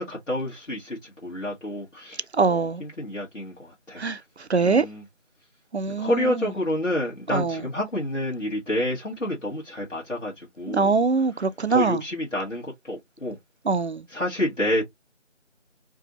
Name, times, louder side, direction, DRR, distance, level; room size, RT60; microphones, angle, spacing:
voice 1, 0.0-4.0 4.6-5.0 5.9-10.9 11.7-13.4 14.1-14.8, left 1 dB, 85° left, 1.6 m, -29 dB
voice 2, 2.4-2.8 4.0-4.2 4.5-4.9 5.7-6.5 7.3-7.6 10.7-12.0 13.7-14.1, right 4 dB, 65° right, 0.5 m, -23 dB
2.7 x 2.5 x 3.9 m
figure-of-eight pair, 180°, 36 cm